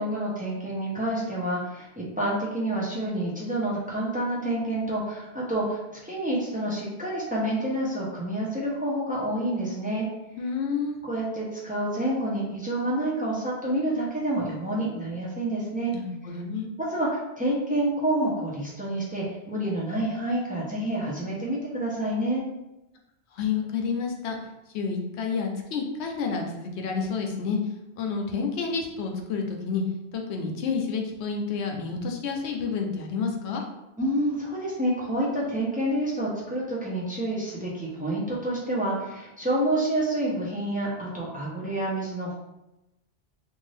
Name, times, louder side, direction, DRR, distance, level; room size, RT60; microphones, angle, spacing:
voice 1, 0.0-10.1 11.0-15.9 16.8-22.4 34.0-42.4, right 1 dB, 10° right, -5 dB, 0.4 m, -28 dB
voice 2, 10.4-10.9 15.9-16.7 23.3-24.4 24.7-27.6 28.0-29.8 30.1-33.6, left 5 dB, 80° left, 2 dB, 0.9 m, -29 dB
2.6 x 2.4 x 3.2 m, 0.94 s
omnidirectional pair, 1.1 m